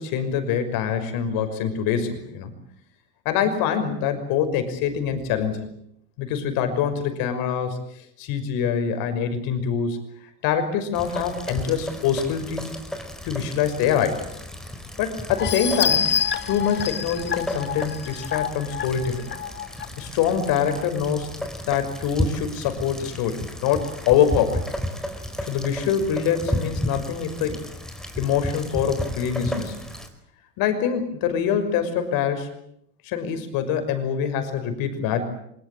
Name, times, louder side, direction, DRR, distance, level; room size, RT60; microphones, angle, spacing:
voice 1, 0.0-2.5 3.2-5.7 6.2-7.8 8.2-10.0 10.4-12.7 13.2-14.3 15.0-16.2 16.5-19.3 20.0-21.3 21.7-24.6 25.4-27.6 28.2-29.8 30.6-32.5 33.0-35.2, left 8 dB, 50° left, 8 dB, 6.0 m, -24 dB
Rain, 10.9-30.1, left 1 dB, ahead, 4.6 m, -33 dB
sound 1, 15.4-19.9 20.3-20.4 20.8-20.9, left 7 dB, 25° left, 1.4 m, -27 dB
24.0 x 22.5 x 8.7 m, 0.72 s
hypercardioid pair, 95°, 43 cm